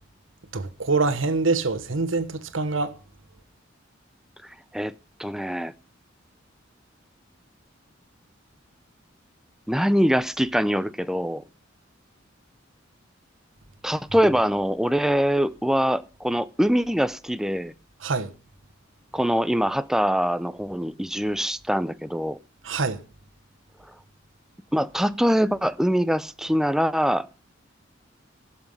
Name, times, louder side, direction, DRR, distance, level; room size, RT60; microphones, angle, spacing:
voice 1, 0.5-2.9 18.0-18.3 22.6-23.0, right 3 dB, 85° right, 1.3 m, -25 dB
voice 2, 5.2-5.7 9.7-11.4 13.8-17.7 19.1-22.4 24.7-27.3, equal, 5° right, 0.6 m, -23 dB
16.5 x 7.3 x 5.5 m
head